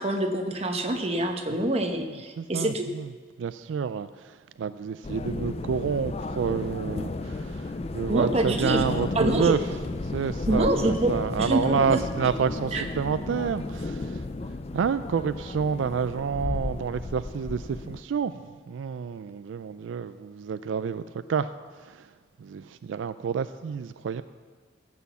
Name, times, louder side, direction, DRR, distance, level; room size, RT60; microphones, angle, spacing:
voice 1, 0.0-2.9 8.1-9.6 10.5-12.0 12.7-12.9, right 1 dB, 35° right, 4 dB, 1.1 m, -26 dB
voice 2, 2.4-3.1 3.4-4.1 4.6-9.6 10.1-14.2 14.7-18.4 18.7-21.0 21.3-21.5 22.4-24.2, right 6 dB, 80° right, 13 dB, 0.3 m, -28 dB
sound 1, 5.0-18.0, left 2 dB, 35° left, 0.4 m, -33 dB
15.0 x 6.3 x 7.0 m, 1.5 s
head